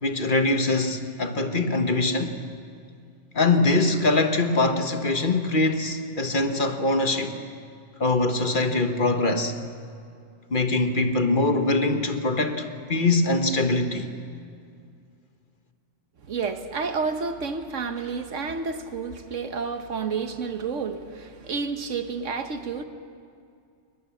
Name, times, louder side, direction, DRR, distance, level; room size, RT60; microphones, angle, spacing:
voice 1, 0.0-2.3 3.3-7.4 8.0-9.5 10.5-14.1, left 2 dB, 45° left, 6 dB, 1.4 m, -23 dB
voice 2, 16.2-22.8, right 5 dB, 85° right, 8 dB, 1.6 m, -30 dB
21.5 x 20.5 x 7.3 m, 2.3 s
omnidirectional pair, 1.2 m